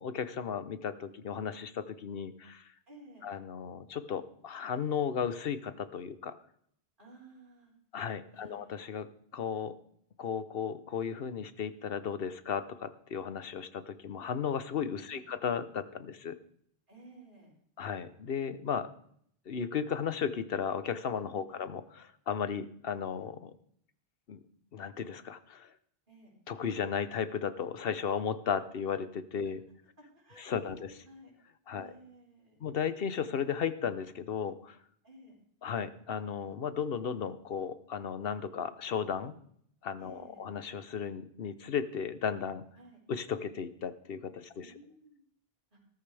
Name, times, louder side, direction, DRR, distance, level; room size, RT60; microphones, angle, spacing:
voice 1, 0.0-2.7 3.2-6.4 7.9-9.1 9.3-9.7 10.2-16.4 17.8-18.9 19.5-23.5 24.3-24.4 24.7-25.7 26.5-29.6 30.4-30.9 31.7-31.9 32.6-34.8 35.6-39.3 39.8-42.6 43.1-44.7, left 7 dB, 70° left, 13 dB, 1.0 m, -35 dB
voice 2, 2.9-3.3 7.0-7.7 8.3-8.6 15.1-15.3 16.9-17.5 21.4-21.7 26.1-26.3 30.0-31.3 31.7-32.6 35.0-35.4 40.0-40.4 42.8-43.0 44.6-45.2 45.7-45.8, right 2 dB, 55° right, -3 dB, 4.9 m, -55 dB
14.0 x 13.0 x 3.4 m, 0.66 s
omnidirectional pair, 1.0 m